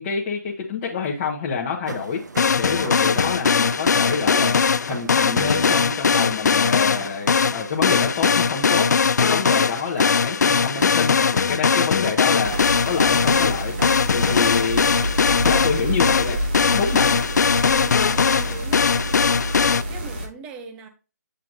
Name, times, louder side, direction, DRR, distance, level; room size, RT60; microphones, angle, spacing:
voice 1, 0.0-2.2 2.5-4.5 4.9-8.9 9.2-12.5 12.9-13.7 14.1-14.8 15.3-16.4 16.6-17.2, left 5 dB, 20° left, -2 dB, 1.0 m, -27 dB
sound 1, 1.9-14.6, right 3 dB, 80° right, 1.0 m, -37 dB
sound 2, 2.4-19.8, left 6 dB, 75° left, 0.3 m, -20 dB
sound 3, 12.4-20.3, equal, 35° right, 1.6 m, -28 dB
voice 2, 17.7-18.8 19.3-20.9, right 4 dB, 10° right, 6 dB, 0.6 m, -40 dB
7.9 x 5.6 x 2.6 m, 0.32 s
hypercardioid pair, 165°, 9 cm